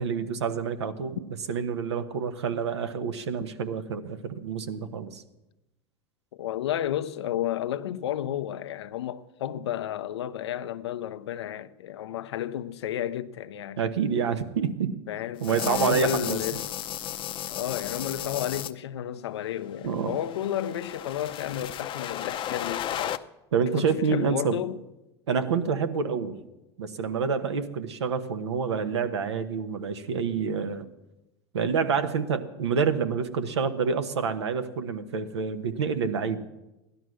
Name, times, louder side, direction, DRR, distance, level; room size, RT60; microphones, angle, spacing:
voice 1, 0.0-5.2 13.8-14.9 15.4-16.6 19.8-20.2 23.5-24.6 25.3-26.4 26.8-30.9 31.5-36.4, right 6 dB, 90° right, 1.2 m, -28 dB
voice 2, 6.3-13.8 15.1-16.6 17.5-23.2 23.8-24.8, left 11 dB, 80° left, 0.8 m, -32 dB
sound 1, 15.4-18.7 19.8-23.2, left 11 dB, 40° left, 0.7 m, -34 dB
16.0 x 11.5 x 6.3 m
hypercardioid pair, 95°, 14 cm